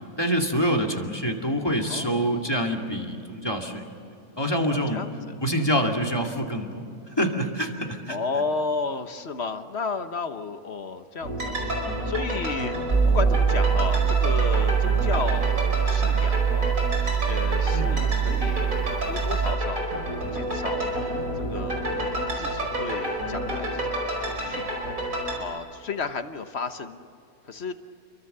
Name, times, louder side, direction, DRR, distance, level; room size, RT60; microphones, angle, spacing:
voice 1, 0.2-3.9 4.4-5.0 5.4-6.8 7.2-8.2 17.6-18.0, equal, 15° left, 2 dB, 2.3 m, -26 dB
voice 2, 1.9-2.5 4.9-5.1 8.1-11.5 12.1-12.8 13.1-16.8 17.2-20.0 20.3-20.9 21.5-24.7 25.4-27.0 27.5-27.7, left 4 dB, 45° left, 9 dB, 1.3 m, -33 dB
sound 1, 11.2-25.4, right 1 dB, 65° right, 5.6 m, -29 dB
sound 2, 12.9-19.5, right 7 dB, 20° right, 1.0 m, -23 dB
29.5 x 23.5 x 6.8 m, 2.6 s
omnidirectional pair, 1.6 m